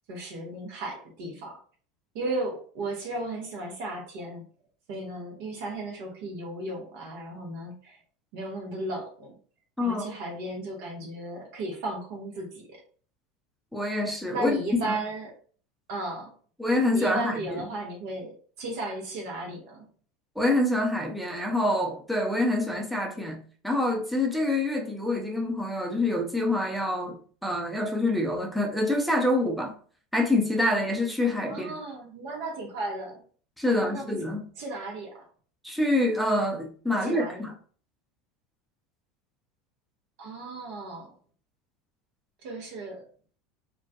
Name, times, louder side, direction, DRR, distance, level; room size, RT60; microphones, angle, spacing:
voice 1, 0.1-1.6 2.1-4.4 4.9-8.0 8.3-9.3 9.8-12.8 14.3-15.3 15.9-16.3 16.9-19.8 31.5-33.2 33.7-35.2 36.9-37.4 40.2-41.1 42.4-43.0, right 2 dB, 65° right, 0.7 m, -35 dB
voice 2, 13.7-14.6 14.9-15.0 16.6-17.6 20.4-29.7 30.1-31.7 33.6-34.4 35.6-37.5, left 1 dB, ahead, 0.5 m, -26 dB
2.2 x 2.2 x 2.6 m
hypercardioid pair, 85°, 0 cm